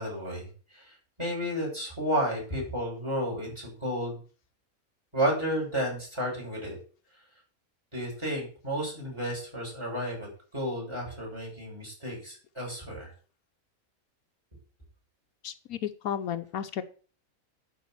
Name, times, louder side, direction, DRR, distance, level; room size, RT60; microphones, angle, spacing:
voice 1, 0.0-4.2 5.1-6.8 7.9-13.1, equal, 20° right, -2 dB, 6.4 m, -32 dB
voice 2, 15.4-16.8, left 9 dB, 80° left, 9 dB, 1.2 m, -33 dB
11.5 x 4.7 x 7.4 m, 0.40 s
omnidirectional pair, 1.5 m